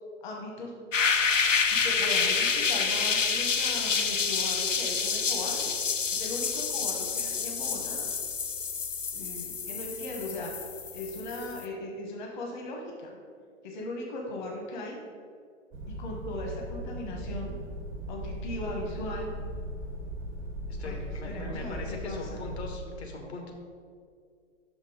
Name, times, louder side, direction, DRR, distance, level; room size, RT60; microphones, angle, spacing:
voice 1, 0.2-0.7 1.8-5.7 6.1-8.1 9.1-10.5 10.9-13.1 13.6-15.0 15.9-17.5 18.1-19.3 20.8-21.0 21.3-22.4, left 2 dB, 40° left, 0 dB, 1.1 m, -38 dB
sound 1, 0.9-11.6, left 5 dB, 85° left, 0.6 m, -28 dB
sound 2, 15.7-22.8, right 1 dB, 5° right, 0.4 m, -38 dB
voice 2, 20.7-23.5, left 3 dB, 60° left, 2 dB, 1.3 m, -40 dB
5.9 x 5.4 x 4.9 m, 2.2 s
figure-of-eight pair, 115°, 37 cm